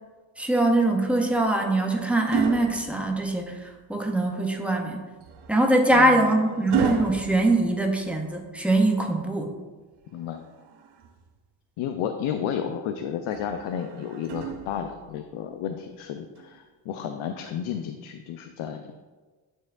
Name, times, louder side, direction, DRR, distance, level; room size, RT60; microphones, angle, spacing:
voice 1, 0.4-3.5 3.9-5.0 5.5-9.5, right 2 dB, 5° right, 2 dB, 0.4 m, -22 dB
sound 1, 1.2-3.6 5.2-8.4 10.2-11.3 13.3-15.1 16.4-16.6, right 7 dB, 55° right, 0.6 m, -34 dB
voice 2, 5.9-6.4 10.1-10.4 11.8-18.9, left 8 dB, 85° left, 7 dB, 0.5 m, -32 dB
9.2 x 4.3 x 2.4 m, 1.3 s
wide cardioid pair, 165°, 48 cm